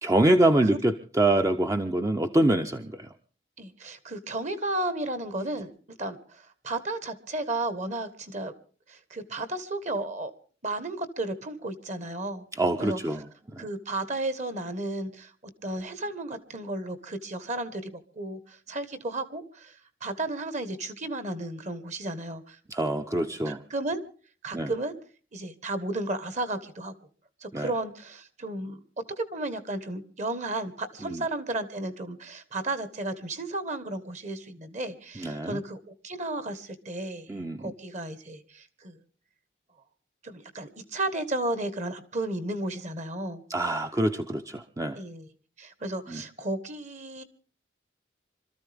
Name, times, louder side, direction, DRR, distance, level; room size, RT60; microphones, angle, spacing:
voice 1, 0.0-3.1 12.6-13.2 13.5-13.6 22.7-23.6 24.5-24.7 27.5-27.7 31.0-31.2 35.2-35.6 37.3-37.7 43.5-45.0 46.1-46.2, right 1 dB, 15° right, 6 dB, 0.6 m, -25 dB
voice 2, 3.6-5.7 6.0-8.5 8.9-10.3 10.6-12.5 12.8-13.0 13.6-15.3 15.6-19.7 20.0-22.6 23.4-24.0 24.4-24.9 25.3-26.9 27.4-28.8 29.2-39.0 40.2-43.4 45.0-45.3 45.6-47.2, right 2 dB, 40° right, 12 dB, 1.4 m, -33 dB
26.0 x 13.5 x 3.5 m, 0.40 s
head